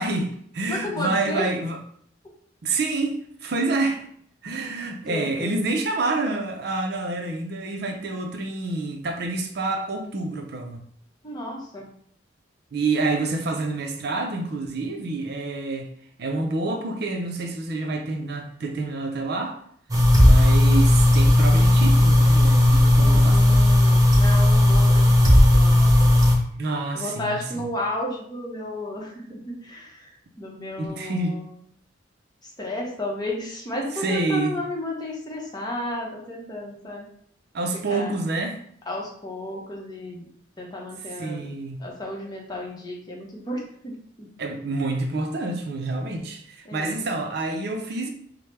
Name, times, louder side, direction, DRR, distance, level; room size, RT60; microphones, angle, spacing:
voice 1, 0.0-1.8 2.6-4.1 4.4-10.9 12.7-15.9 16.2-19.6 20.2-23.8 26.6-27.4 30.8-31.4 34.0-34.6 37.5-38.6 41.2-41.8 44.4-48.1, right 3 dB, 60° right, 4 dB, 0.5 m, -28 dB
voice 2, 0.7-1.5 5.1-5.7 11.2-11.9 23.0-26.1 26.9-31.5 32.4-37.1 37.9-38.2 38.9-40.3 40.6-41.5 41.8-44.3 46.6-47.0, left 1 dB, 20° left, -2 dB, 0.8 m, -33 dB
sound 1, 19.9-26.3, left 1 dB, 20° right, 0.7 m, -15 dB
4.4 x 2.1 x 3.3 m, 0.64 s
head